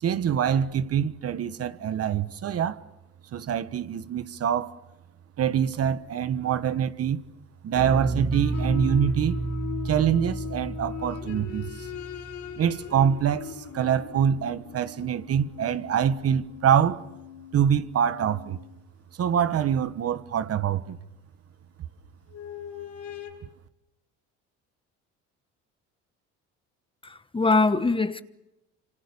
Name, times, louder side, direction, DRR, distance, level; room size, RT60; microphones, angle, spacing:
voice 1, 0.0-2.8 3.3-4.8 5.4-7.2 7.6-9.4 9.8-11.9 12.6-17.1 17.5-18.6 19.2-21.0, right 8 dB, 50° right, 1.3 m, -25 dB
sound 1, 7.8-13.0, right 3 dB, 30° right, 2.5 m, -31 dB
sound 2, 8.1-18.8 20.6-20.7 22.3-23.3, left 10 dB, 65° left, 7.4 m, -40 dB
voice 2, 27.0-28.2, left 3 dB, 15° left, 1.2 m, -23 dB
26.5 x 26.0 x 7.0 m
supercardioid pair, 90°, 31 cm